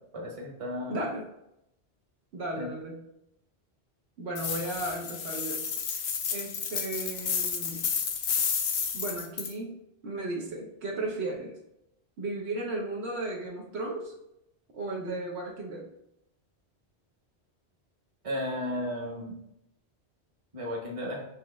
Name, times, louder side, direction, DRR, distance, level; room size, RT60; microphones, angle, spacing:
voice 1, 0.1-1.0 2.6-2.7 18.2-19.4 20.5-21.2, left 1 dB, 35° right, -1 dB, 0.9 m, -34 dB
voice 2, 0.9-1.2 2.3-3.0 4.2-5.6 6.3-7.8 8.9-11.5 12.2-14.1 14.7-15.9, right 2 dB, 75° right, -2 dB, 1.1 m, -35 dB
sound 1, 4.4-9.5, left 6 dB, 70° left, 0.8 m, -31 dB
6.3 x 3.0 x 2.3 m, 0.83 s
omnidirectional pair, 1.1 m